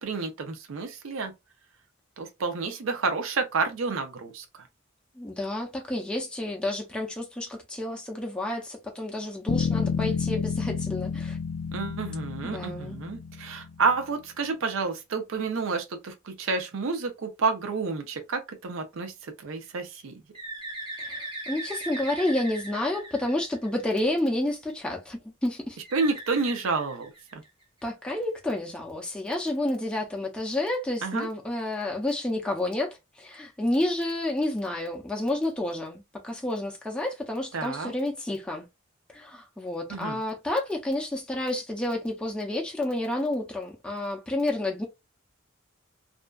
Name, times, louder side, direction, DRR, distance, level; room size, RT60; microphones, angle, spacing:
voice 1, 0.0-1.3 2.2-4.6 11.7-20.2 25.9-27.4 31.0-31.3 37.5-37.9 39.9-40.2, right 4 dB, 80° right, 0.5 m, -30 dB
voice 2, 5.2-11.4 12.4-13.0 21.0-25.8 27.8-38.7 39.1-44.9, left 1 dB, 5° left, 0.4 m, -30 dB
Bass guitar, 9.5-13.8, left 6 dB, 80° left, 0.3 m, -30 dB
Bird, 20.3-24.1 25.8-27.6, right 2 dB, 25° right, 0.7 m, -39 dB
2.5 x 2.2 x 2.2 m
head